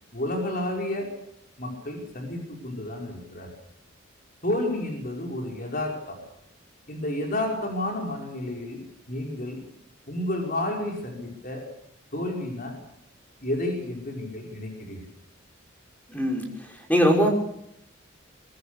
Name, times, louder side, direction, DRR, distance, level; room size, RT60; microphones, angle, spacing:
voice 1, 0.1-1.1 1.6-3.5 4.4-6.2 6.9-9.6 10.1-11.7 12.1-12.8 13.4-15.0, left 1 dB, 45° left, 1 dB, 5.4 m, -31 dB
voice 2, 16.1-17.3, equal, 10° left, 2 dB, 5.5 m, -22 dB
23.5 x 22.0 x 6.7 m, 0.77 s
head